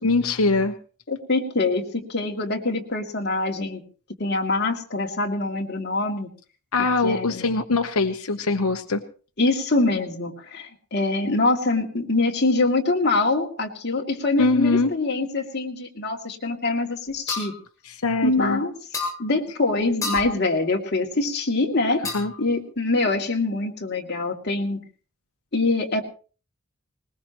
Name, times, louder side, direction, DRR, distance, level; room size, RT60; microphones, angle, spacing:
voice 1, 0.0-0.7 6.7-9.0 14.4-14.9 17.8-18.6 22.1-22.3, left 3 dB, 90° left, 6 dB, 1.0 m, -22 dB
voice 2, 1.1-3.8 4.2-6.3 7.0-7.5 9.4-17.5 18.2-22.1 22.4-24.8 25.5-26.0, left 2 dB, 50° left, 0 dB, 2.6 m, -24 dB
sound 1, 17.3-17.5 18.9-19.2 20.0-20.3 22.0-22.4, left 3 dB, 15° left, 6.1 m, -29 dB
20.5 x 20.5 x 3.1 m, 0.38 s
head